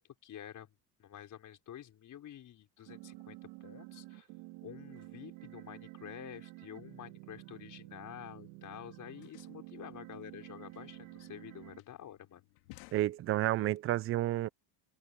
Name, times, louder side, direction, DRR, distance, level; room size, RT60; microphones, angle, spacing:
voice 1, 0.0-4.3 4.6-12.4, left 10 dB, 35° left, 5.7 m, -49 dB
sound 1, 2.9-11.8, right 21 dB, 65° right, 2.9 m, -50 dB
sound 2, 8.6-13.8, left 22 dB, 85° left, 2.9 m, -60 dB
voice 2, 12.9-14.5, right 15 dB, 30° right, 0.4 m, -30 dB
cardioid pair, 145°, 50 cm